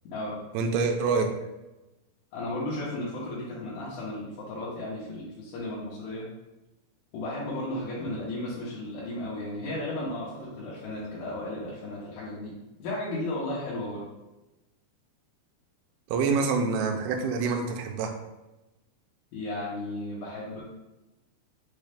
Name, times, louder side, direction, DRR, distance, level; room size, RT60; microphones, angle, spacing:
voice 1, 0.5-1.3 16.1-18.2, right 4 dB, 80° right, 3 dB, 2.4 m, -26 dB
voice 2, 2.3-6.3 7.1-14.0 19.3-20.6, left 1 dB, 75° left, -8 dB, 2.5 m, -34 dB
6.4 x 2.3 x 3.4 m, 1.0 s
omnidirectional pair, 4.8 m